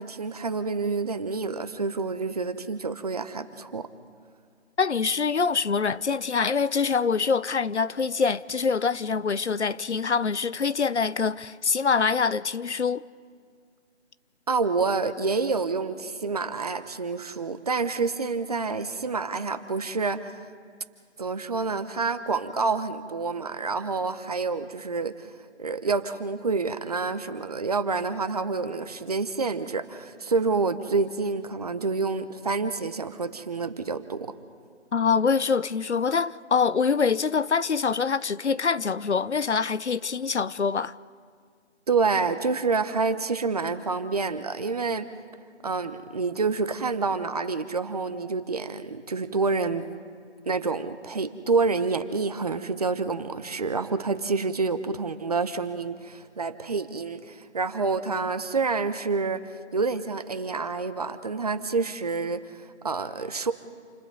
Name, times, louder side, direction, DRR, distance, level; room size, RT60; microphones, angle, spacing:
voice 1, 0.0-3.9 14.5-20.5 21.2-25.3 25.6-34.3 41.9-45.1 45.6-49.9 50.5-63.5, right 4 dB, 35° right, 1.0 m, -28 dB
voice 2, 4.8-13.0 34.9-40.9, left 5 dB, 70° left, 0.8 m, -25 dB
28.5 x 28.5 x 4.1 m
figure-of-eight pair, 160°, 35 cm